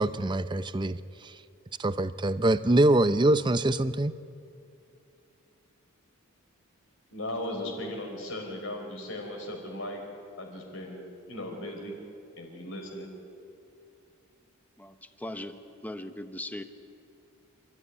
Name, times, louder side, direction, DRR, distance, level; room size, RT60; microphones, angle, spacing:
voice 1, 0.0-1.3 1.8-4.1, right 1 dB, 20° right, 13 dB, 0.6 m, -24 dB
voice 2, 7.1-10.0 10.4-11.9 12.4-13.1, left 1 dB, 60° left, 2 dB, 5.0 m, -37 dB
voice 3, 14.8-16.6, left 1 dB, 5° left, 8 dB, 1.0 m, -39 dB
27.5 x 14.0 x 9.6 m, 2.5 s
head